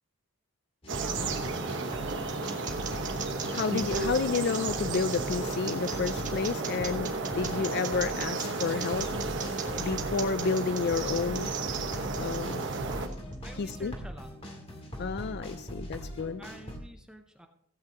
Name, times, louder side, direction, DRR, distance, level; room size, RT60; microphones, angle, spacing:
sound 1, 0.8-16.8, equal, 25° left, 2.0 m, -41 dB
sound 2, 0.9-13.1, right 3 dB, 55° right, 1.3 m, -33 dB
voice 1, 1.0-1.4 13.4-14.3 16.4-17.5, right 1 dB, 5° right, 4 dB, 0.6 m, -48 dB
sound 3, 1.7-13.3, right 8 dB, 35° right, 1.6 m, -39 dB
voice 2, 3.5-9.1 9.8-11.5 12.2-12.6 13.6-13.9 15.0-16.4, left 5 dB, 45° left, 12 dB, 0.4 m, -31 dB
16.5 x 8.9 x 2.9 m, 0.68 s
head